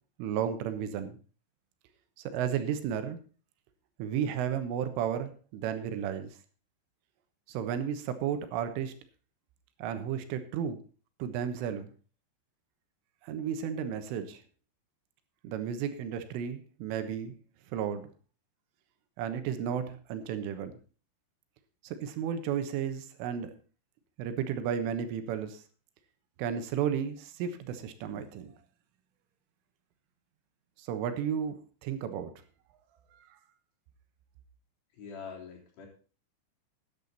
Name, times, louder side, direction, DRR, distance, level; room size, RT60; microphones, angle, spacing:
voice 1, 0.2-1.2 2.3-3.2 4.0-6.3 7.5-8.9 9.8-10.8 11.2-11.9 13.2-14.4 15.4-17.4 17.7-18.1 19.2-20.7 21.8-23.5 24.2-25.6 26.4-28.5 30.8-32.3 33.1-33.2, right 8 dB, 80° right, 9 dB, 3.7 m, -33 dB
voice 2, 34.9-35.9, left 6 dB, 55° left, -1 dB, 5.3 m, -44 dB
14.0 x 10.5 x 4.0 m, 0.36 s
omnidirectional pair, 5.8 m